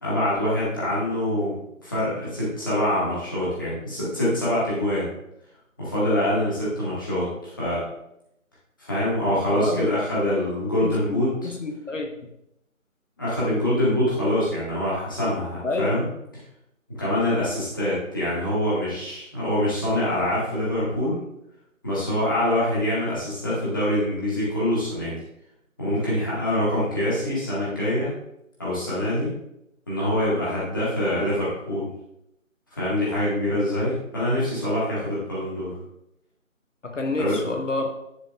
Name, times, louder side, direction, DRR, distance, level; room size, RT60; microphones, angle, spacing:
voice 1, 0.0-5.1 5.8-7.8 8.8-11.5 13.2-16.1 16.9-21.2 21.8-25.2 25.8-28.1 28.6-29.3 29.9-31.9 32.7-35.8 37.2-37.4, left 1 dB, 15° left, -8 dB, 1.7 m, -25 dB
voice 2, 9.5-9.9 10.8-12.1 15.6-16.0 36.8-37.9, left 3 dB, 60° left, 3 dB, 0.9 m, -28 dB
10.0 x 6.6 x 2.4 m, 0.81 s
figure-of-eight pair, 170°, 42 cm